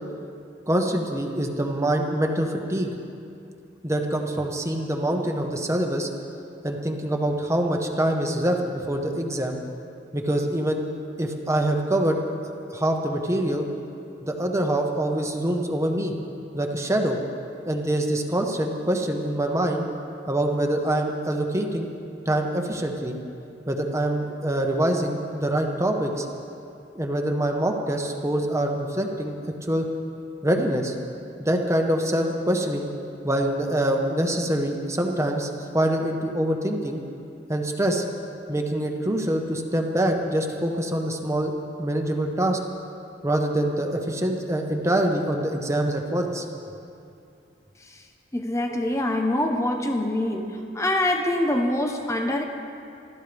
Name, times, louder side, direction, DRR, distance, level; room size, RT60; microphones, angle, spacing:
voice 1, 0.7-2.9 3.8-6.1 6.6-9.5 10.1-10.8 11.2-13.6 14.2-16.1 16.5-17.2 17.7-19.8 20.3-21.9 22.3-23.1 23.7-26.3 26.9-29.4 29.6-29.9 30.4-30.9 31.4-32.9 33.2-37.0 37.5-38.0 38.5-41.5 41.8-42.6 43.2-46.4, right 1 dB, 15° right, 2 dB, 1.2 m, -25 dB
voice 2, 48.3-52.4, left 1 dB, 15° left, 3 dB, 0.9 m, -24 dB
25.0 x 14.0 x 3.5 m, 2.6 s
head